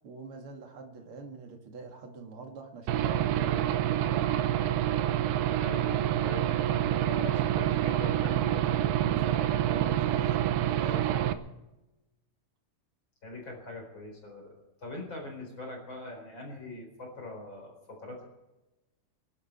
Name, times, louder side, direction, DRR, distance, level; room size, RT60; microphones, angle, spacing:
voice 1, 0.0-4.3 9.6-11.4, right 4 dB, 40° right, 3 dB, 2.5 m, -44 dB
Aircraft / Engine, 2.9-11.3, right 12 dB, 90° right, 2.8 m, -27 dB
voice 2, 5.6-9.7 13.2-18.2, left 2 dB, 30° left, 1 dB, 4.7 m, -42 dB
25.0 x 12.0 x 4.4 m, 0.98 s
omnidirectional pair, 4.6 m